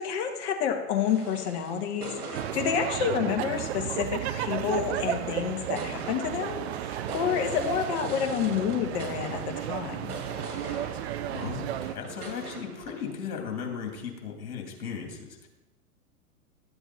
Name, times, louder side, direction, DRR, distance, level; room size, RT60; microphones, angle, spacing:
voice 1, 0.0-10.1, left 8 dB, 45° left, 3 dB, 1.9 m, -29 dB
sound 1, 0.9-13.1, right 4 dB, 75° right, 2.5 m, -43 dB
sound 2, 2.3-11.9, right 11 dB, 45° right, 0.7 m, -33 dB
voice 2, 11.3-15.5, left 6 dB, 65° left, 1 dB, 3.1 m, -36 dB
12.5 x 7.9 x 4.4 m, 1.0 s
hypercardioid pair, 110°, 45 cm